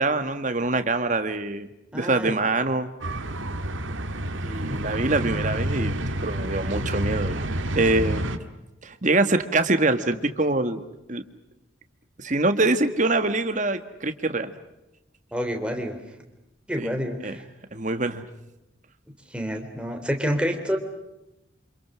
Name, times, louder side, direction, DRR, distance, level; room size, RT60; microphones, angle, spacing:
voice 1, 0.0-1.7 1.9-2.9 4.3-7.5 7.7-8.3 8.8-10.8 11.1-11.2 12.2-14.5 16.8-17.0 17.2-17.4 17.7-18.3, right 2 dB, 40° right, 9 dB, 1.7 m, -24 dB
voice 2, 1.9-2.4 4.7-4.8 15.3-16.0 16.7-17.4 19.3-20.8, equal, 5° right, 4 dB, 3.5 m, -28 dB
sound 1, 3.0-8.4, right 1 dB, 85° right, 1.9 m, -29 dB
28.5 x 27.0 x 6.3 m, 0.94 s
head